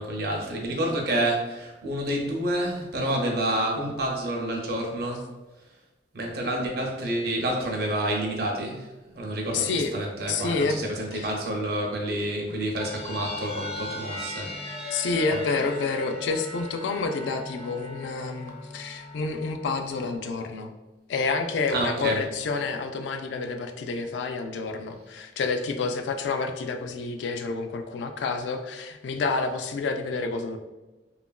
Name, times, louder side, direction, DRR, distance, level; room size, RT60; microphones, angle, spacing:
voice 1, 0.0-5.3 6.1-8.9 9.1-15.1 15.3-15.4 21.7-22.2, right 1 dB, 60° right, 0 dB, 0.5 m, -29 dB
voice 2, 9.5-10.0 10.3-10.8 11.1-11.3 14.9-20.7 21.1-30.6, left 4 dB, 85° left, 6 dB, 0.3 m, -29 dB
sound 1, 12.8-20.2, left 2 dB, 35° left, 0.6 m, -38 dB
2.8 x 2.4 x 2.2 m, 1.1 s
head